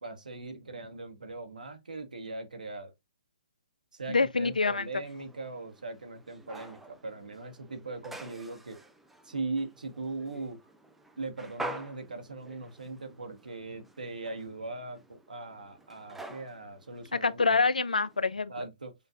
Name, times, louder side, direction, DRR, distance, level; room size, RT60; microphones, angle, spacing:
voice 1, 0.0-2.9 3.9-8.8 9.2-10.6 11.2-17.4 18.5-18.9, right 3 dB, 85° right, 1.2 m, -40 dB
voice 2, 4.1-4.9 17.2-18.5, left 4 dB, 90° left, 0.4 m, -26 dB
sound 1, 4.5-18.3, right 1 dB, 5° right, 0.4 m, -48 dB
7.0 x 2.5 x 2.4 m
hypercardioid pair, 135°, 4 cm